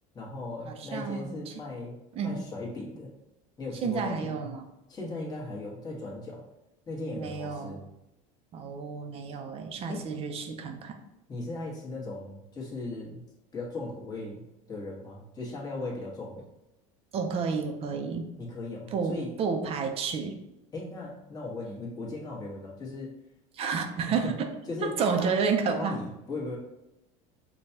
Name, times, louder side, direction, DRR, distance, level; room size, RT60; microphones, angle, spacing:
voice 1, 0.1-2.0 2.2-3.1 3.6-4.5 4.9-6.4 6.9-7.8 9.9-10.0 11.3-13.2 13.5-14.4 14.7-16.5 18.4-19.3 20.7-23.1 24.1-24.3 24.7-25.3 25.7-26.6, left 2 dB, 25° left, -4 dB, 1.3 m, -37 dB
voice 2, 0.7-1.5 2.1-2.4 3.8-4.7 7.2-7.8 8.5-11.0 17.1-18.3 18.9-20.4 23.5-24.5 24.8-26.0, right 5 dB, 35° right, 5 dB, 0.5 m, -30 dB
5.1 x 2.3 x 2.7 m, 0.91 s
supercardioid pair, 130°, 16 cm